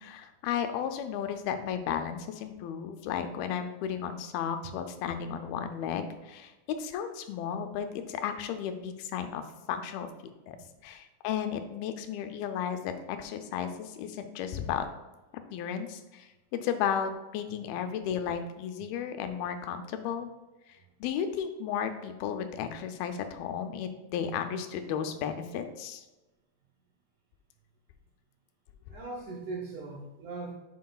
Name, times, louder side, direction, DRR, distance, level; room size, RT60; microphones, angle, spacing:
voice 1, 0.0-9.4 9.7-10.1 10.5-10.6 10.8-14.9 15.5-20.3 20.7-26.0, left 8 dB, 80° left, 8 dB, 2.4 m, -34 dB
voice 2, 28.9-30.5, right 3 dB, 75° right, -1 dB, 1.8 m, -40 dB
9.3 x 5.6 x 2.3 m, 1.1 s
omnidirectional pair, 4.4 m